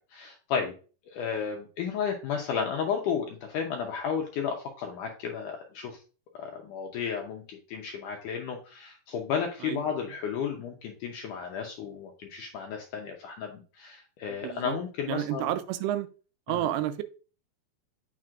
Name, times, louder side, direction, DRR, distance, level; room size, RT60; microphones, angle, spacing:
voice 1, 0.1-0.7 1.1-6.0 6.3-15.5 16.5-16.7, left 7 dB, 75° left, 1.9 m, -33 dB
voice 2, 14.3-14.8 15.1-16.1 16.5-17.0, right 12 dB, 85° right, 2.6 m, -30 dB
7.4 x 6.0 x 2.4 m
omnidirectional pair, 4.5 m